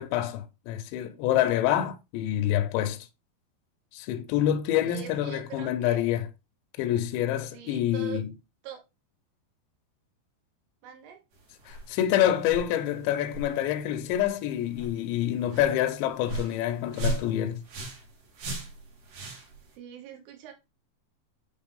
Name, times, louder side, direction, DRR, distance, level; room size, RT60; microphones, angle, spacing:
voice 1, 0.0-3.0 3.9-6.3 6.8-8.3 11.7-17.6, left 11 dB, 85° left, 2.5 m, -27 dB
voice 2, 4.8-6.1 7.5-8.2 8.6-8.8 10.8-11.2 19.7-20.5, right 9 dB, 80° right, 3.5 m, -43 dB
sound 1, 11.3-19.7, right 2 dB, 55° right, 2.7 m, -38 dB
8.3 x 3.1 x 3.6 m
omnidirectional pair, 5.8 m